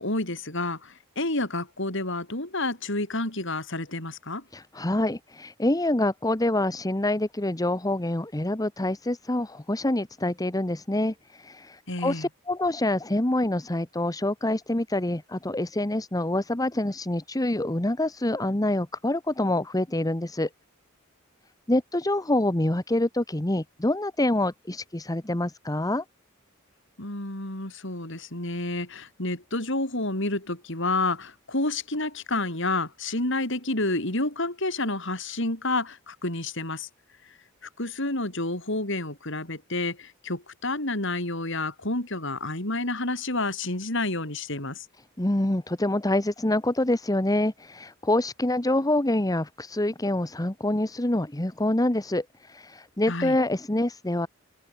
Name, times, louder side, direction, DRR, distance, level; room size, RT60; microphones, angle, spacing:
voice 1, 0.0-4.4 11.9-12.3 27.0-36.9 37.2-37.3 37.8-44.9 53.1-53.4, left 2 dB, 60° left, 6.7 m, -29 dB
voice 2, 4.5-20.5 21.7-26.0 45.2-54.3, left 1 dB, 15° left, 1.1 m, -26 dB
head